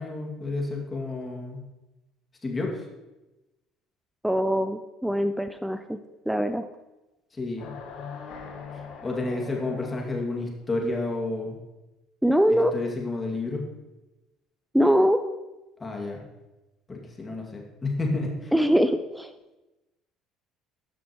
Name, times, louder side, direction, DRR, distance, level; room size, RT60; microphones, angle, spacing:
voice 1, 0.0-1.6 2.4-2.8 7.3-7.7 9.0-11.6 12.5-13.6 15.8-16.2 16.9-18.5, left 2 dB, 25° left, 0 dB, 2.3 m, -30 dB
voice 2, 4.2-6.0 6.3-6.6 12.2-12.7 14.7-15.2 18.5-19.3, equal, 5° right, 9 dB, 0.5 m, -22 dB
sound 1, 7.6-10.4, left 6 dB, 65° left, 1.4 m, -40 dB
12.5 x 6.1 x 3.1 m, 1.0 s
supercardioid pair, 80°, 0 cm